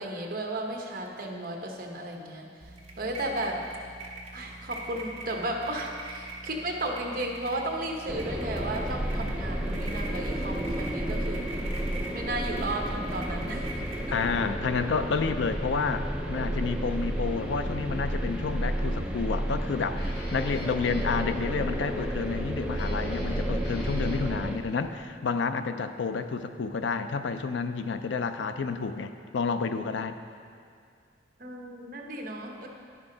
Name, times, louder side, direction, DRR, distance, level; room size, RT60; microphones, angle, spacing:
voice 1, 0.0-2.5 3.0-3.6 4.3-11.6 12.1-13.8 31.4-32.7, right 1 dB, 50° right, 1 dB, 0.9 m, -34 dB
sound 1, 2.6-14.5, right 2 dB, 30° right, 1.3 m, -43 dB
sound 2, 8.1-24.6, right 1 dB, 5° right, 0.5 m, -31 dB
voice 2, 14.1-30.2, left 5 dB, 75° left, 9 dB, 0.4 m, -30 dB
Guitar, 18.5-24.3, equal, 60° left, 1.1 m, -44 dB
10.5 x 6.1 x 3.8 m, 2.2 s
head